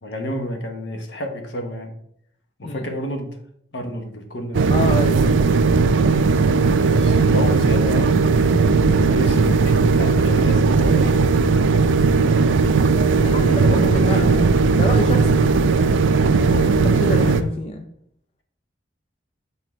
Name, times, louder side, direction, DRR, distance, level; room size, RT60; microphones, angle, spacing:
voice 1, 0.0-1.9 2.6-3.3 3.7-5.0 6.8-11.3 13.6-14.4 14.8-15.1 16.4-17.4, equal, 70° left, 4 dB, 1.2 m, -30 dB
sound 1, 4.5-17.4, right 4 dB, 90° right, 0.4 m, -17 dB
voice 2, 4.7-5.4 6.2-6.4 12.1-12.3 13.2-15.5 16.6-17.9, left 1 dB, 30° left, 4 dB, 0.5 m, -28 dB
5.9 x 3.8 x 6.1 m, 0.70 s
head